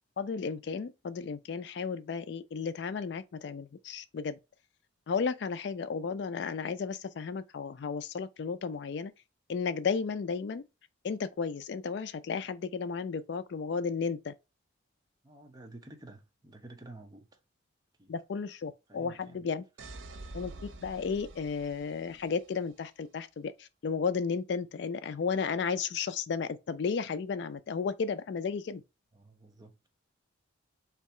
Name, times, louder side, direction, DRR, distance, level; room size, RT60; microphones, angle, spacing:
voice 1, 0.2-4.4 5.1-9.1 9.5-10.6 11.0-14.3 18.1-19.6 20.3-28.8, left 5 dB, 60° left, 0.3 m, -33 dB
voice 2, 15.2-17.4 18.0-18.1 18.9-19.4 29.1-29.7, right 2 dB, 20° right, 0.6 m, -51 dB
sound 1, 19.8-22.6, right 2 dB, 75° right, 0.7 m, -47 dB
3.4 x 2.8 x 4.2 m
head